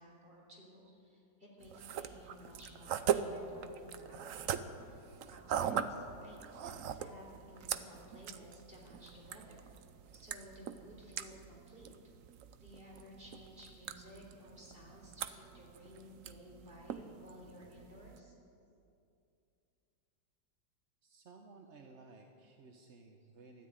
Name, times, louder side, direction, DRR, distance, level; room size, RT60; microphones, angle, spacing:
voice 1, 0.0-9.7 10.1-11.9 12.6-18.3, equal, 30° right, -3 dB, 3.9 m, -55 dB
sound 1, 1.6-18.2, right 8 dB, 65° right, 0.8 m, -41 dB
voice 2, 21.0-23.7, right 3 dB, 50° right, 3 dB, 1.0 m, -57 dB
13.5 x 12.0 x 9.0 m, 2.6 s
omnidirectional pair, 2.0 m